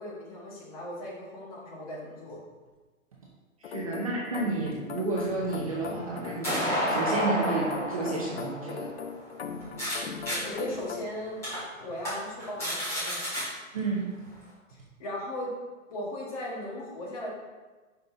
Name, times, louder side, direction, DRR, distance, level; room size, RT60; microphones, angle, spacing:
voice 1, 0.0-2.4 10.4-11.5 11.8-13.2 14.7-15.5 15.9-17.3, left 1 dB, 25° left, -4 dB, 1.5 m, -37 dB
sound 1, 3.6-11.0, left 5 dB, 50° left, 0.6 m, -40 dB
voice 2, 3.6-8.9 13.7-14.1, right 3 dB, 25° right, -4 dB, 0.7 m, -31 dB
sound 2, 5.2-10.0 10.3-10.4 10.9-11.0 11.4-11.6 12.0-12.1 12.4-13.4, equal, 5° left, 1.8 m, -31 dB
10.0 x 5.3 x 2.7 m, 1.3 s
hypercardioid pair, 175°, 41 cm